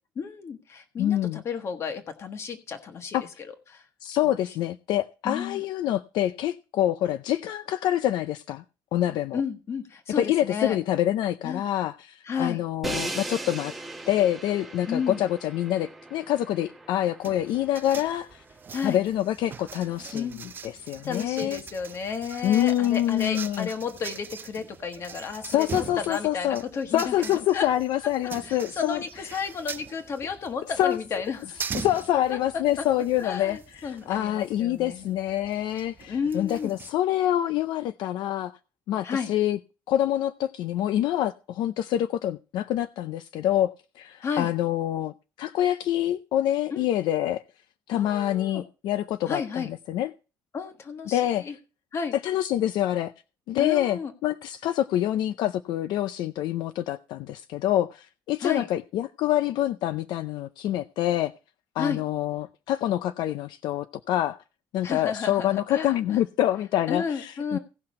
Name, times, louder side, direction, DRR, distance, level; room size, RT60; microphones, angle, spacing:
voice 1, 0.2-3.2 3.7-3.9 5.2-5.6 9.3-10.8 11.4-11.6 12.2-12.6 14.9-15.2 18.7-19.0 20.1-20.4 21.0-27.7 28.5-31.6 32.3-32.9 33.2-35.1 36.1-36.8 39.0-39.3 44.2-44.5 46.7-46.9 47.9-48.6 49.2-49.7 50.5-51.5 51.9-52.1 53.6-54.1 58.4-58.7 61.8-62.0 64.8-66.2 66.9-67.6, left 6 dB, 35° left, 1.4 m, -32 dB
voice 2, 1.0-1.4 3.1-3.2 4.0-8.6 8.9-9.4 10.2-13.7 14.1-18.4 18.8-20.3 20.6-21.6 22.4-23.7 25.5-26.6 26.9-29.0 30.8-31.0 31.7-38.5 38.9-39.6 39.9-47.4 47.9-50.1 51.1-51.5 52.2-53.1 53.5-61.3 61.8-64.4 64.7-67.6, left 12 dB, 70° left, 0.5 m, -26 dB
Crash cymbal, 12.8-18.8, right 2 dB, ahead, 1.0 m, -38 dB
sound 1, 17.2-36.9, right 6 dB, 25° right, 0.5 m, -42 dB
17.0 x 5.9 x 4.3 m
cardioid pair, 170°, 8 cm